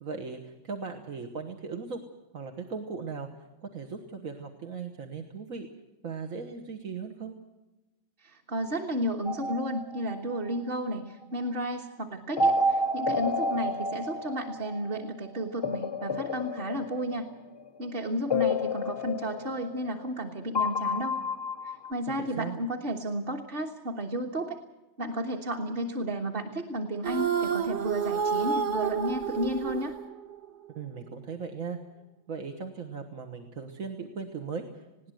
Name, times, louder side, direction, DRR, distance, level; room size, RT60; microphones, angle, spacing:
voice 1, 0.0-2.0 2.3-3.3 3.6-5.7 6.0-7.4 22.2-22.6 30.7-31.8 32.3-35.1, right 5 dB, 85° right, 4 dB, 1.9 m, -38 dB
voice 2, 8.2-17.2 17.8-21.2 21.6-24.6 25.0-29.9, right 1 dB, 45° right, 1 dB, 1.6 m, -32 dB
sound 1, 9.3-10.6 12.4-15.0 15.6-17.6 18.3-20.2 20.5-21.9, left 2 dB, 30° left, 0.4 m, -30 dB
sound 2, 27.0-30.4, right 7 dB, 60° right, 1.3 m, -29 dB
20.5 x 17.5 x 7.8 m, 1.1 s
omnidirectional pair, 1.4 m